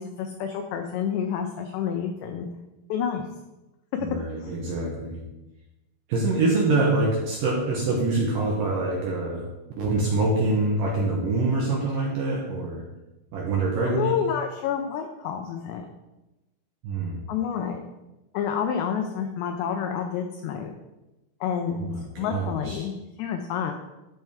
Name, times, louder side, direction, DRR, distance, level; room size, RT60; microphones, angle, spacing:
voice 1, 0.0-2.5 2.9-3.2 4.4-4.5 13.8-15.9 17.3-17.8 18.3-20.7 21.4-21.9 22.2-23.7, left 8 dB, 80° left, 3 dB, 2.6 m, -29 dB
voice 2, 4.0-5.2 6.1-9.5 9.8-12.8 13.3-14.2 16.8-17.3 21.7-22.8, right 2 dB, 75° right, -2 dB, 1.9 m, -25 dB
12.5 x 4.4 x 3.5 m, 0.99 s
omnidirectional pair, 5.4 m